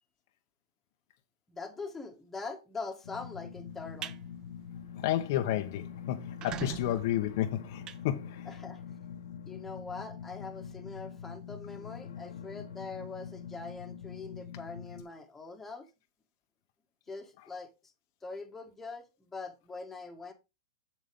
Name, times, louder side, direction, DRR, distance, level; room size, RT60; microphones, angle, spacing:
voice 1, 1.5-4.1 8.5-8.8 9.5-15.9 17.1-17.7 18.2-20.3, left 4 dB, 10° left, 1.8 m, -43 dB
sound 1, 3.0-15.0, left 7 dB, 80° left, 1.2 m, -44 dB
sound 2, 3.7-4.2 4.6-4.9 5.2-5.3 5.6-5.7 6.2-8.7, right 9 dB, 30° right, 0.7 m, -43 dB
voice 2, 5.0-8.5, left 12 dB, 55° left, 0.9 m, -31 dB
7.4 x 7.4 x 3.5 m
hypercardioid pair, 130°, 2 cm